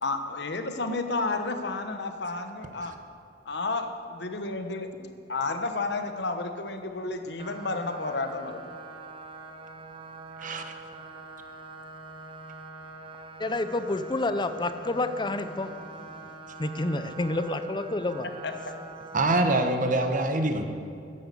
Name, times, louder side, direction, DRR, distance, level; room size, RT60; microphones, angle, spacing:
voice 1, 0.0-3.0 3.4-8.6 18.4-18.7, left 3 dB, 70° left, 7 dB, 1.2 m, -31 dB
sound 1, 7.4-19.3, right 3 dB, 30° right, 0.9 m, -44 dB
voice 2, 13.4-18.3, left 2 dB, 25° left, 10 dB, 0.7 m, -29 dB
voice 3, 19.1-20.6, right 2 dB, 50° right, 6 dB, 1.2 m, -24 dB
13.0 x 10.0 x 6.9 m, 2.6 s
head